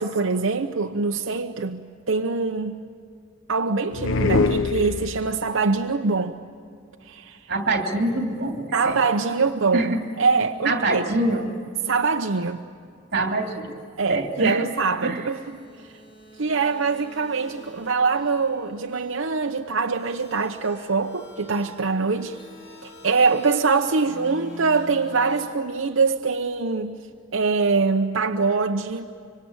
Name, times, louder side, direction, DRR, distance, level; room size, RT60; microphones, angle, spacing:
voice 1, 0.0-2.8 3.5-6.4 7.0-7.4 8.7-11.2 11.8-12.6 14.0-15.6 16.4-22.4 22.8-27.1 27.3-29.1, right 4 dB, 80° right, 0.8 m, -24 dB
sound 1, 3.9-5.5, left 3 dB, 75° left, 0.7 m, -23 dB
voice 2, 7.5-9.0 9.7-10.0 10.6-11.5 13.1-13.7 14.1-14.6 15.0-15.3, right 2 dB, 50° right, 3.0 m, -24 dB
sound 2, 15.2-25.5, left 1 dB, 55° left, 7.0 m, -45 dB
25.5 x 24.5 x 8.8 m
head